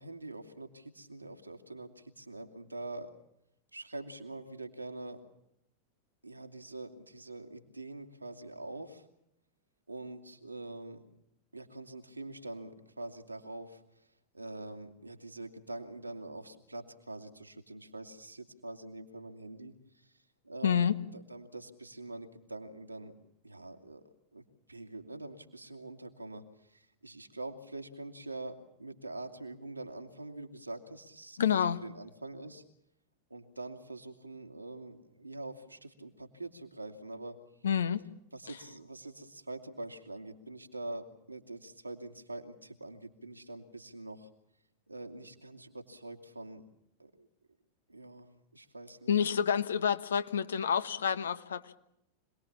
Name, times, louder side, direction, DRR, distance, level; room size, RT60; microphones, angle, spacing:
voice 1, 0.0-3.1 3.7-5.2 6.2-9.1 9.9-11.0 11.5-14.1 14.3-23.1 23.4-24.0 24.3-24.4 24.7-32.6 33.3-37.4 38.3-44.3 44.9-46.6 47.0-47.3 47.9-49.2, right 2 dB, 85° right, 5 dB, 2.5 m, -45 dB
voice 2, 20.6-20.9 31.4-31.8 37.6-38.0 49.1-51.7, left 7 dB, 65° left, 12 dB, 1.3 m, -28 dB
26.5 x 20.0 x 7.3 m, 0.81 s
figure-of-eight pair, 90°, 0 cm